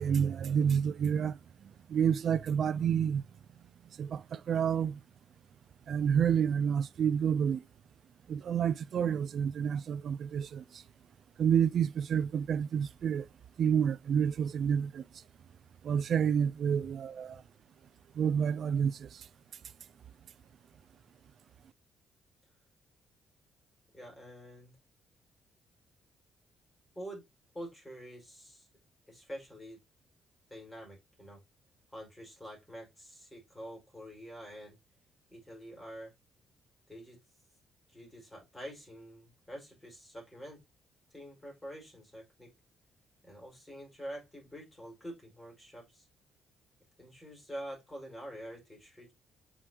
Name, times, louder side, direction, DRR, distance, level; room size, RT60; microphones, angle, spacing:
voice 1, 0.0-1.4 1.9-3.2 4.0-5.0 5.9-7.6 8.3-10.6 11.4-13.3 13.6-15.0 15.8-17.4 18.2-19.1, right 8 dB, 60° right, 0.4 m, -29 dB
voice 2, 23.9-24.7 26.9-27.2 27.5-28.7 29.1-29.8 30.5-31.4 31.9-34.8 35.3-36.1 36.9-37.2 37.9-40.6 41.1-42.5 43.2-46.1 47.0-49.1, equal, 15° left, 5.0 m, -46 dB
7.5 x 4.9 x 2.9 m
cardioid pair, 90°, 0 cm